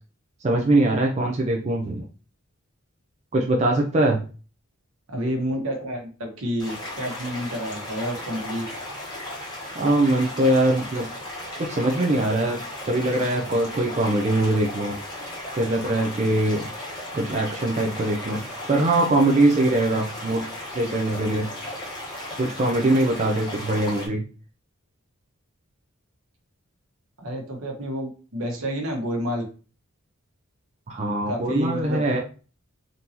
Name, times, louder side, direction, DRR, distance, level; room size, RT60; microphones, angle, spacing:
voice 1, 0.4-2.0 3.3-4.2 9.8-11.1 11.6-12.6 12.8-15.0 15.6-16.7 17.1-18.4 18.7-20.4 20.7-21.5 22.4-24.2 30.9-32.2, right 2 dB, 30° right, 0 dB, 0.4 m, -22 dB
voice 2, 5.1-8.7 27.2-29.4 31.3-32.2, equal, 75° right, 1 dB, 1.1 m, -29 dB
sound 1, 6.6-24.1, left 1 dB, 20° left, 1.3 m, -36 dB
3.7 x 2.7 x 2.8 m, 0.36 s
head